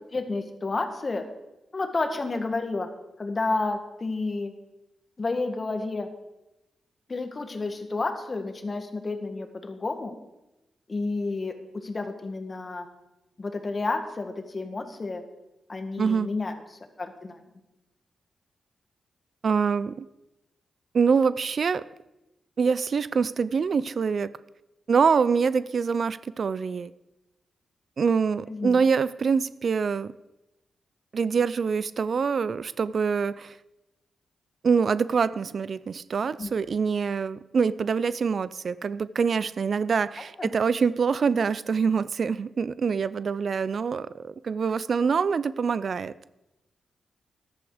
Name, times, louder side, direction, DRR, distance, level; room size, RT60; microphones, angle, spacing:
voice 1, 0.1-1.3 1.7-2.9 3.2-4.5 5.2-6.1 7.1-10.1 10.9-12.9 13.4-15.2 15.7-16.5 17.0-17.4 28.5-28.8 36.4-36.5 40.4-40.5, left 3 dB, 40° left, 7 dB, 1.8 m, -30 dB
voice 2, 16.0-16.3 19.4-20.1 20.9-21.8 22.6-24.3 24.9-26.9 28.0-30.1 31.1-33.5 34.6-46.1, right 5 dB, 60° right, 17 dB, 0.4 m, -25 dB
14.0 x 11.5 x 5.0 m, 0.96 s
cardioid pair, 75°, 0 cm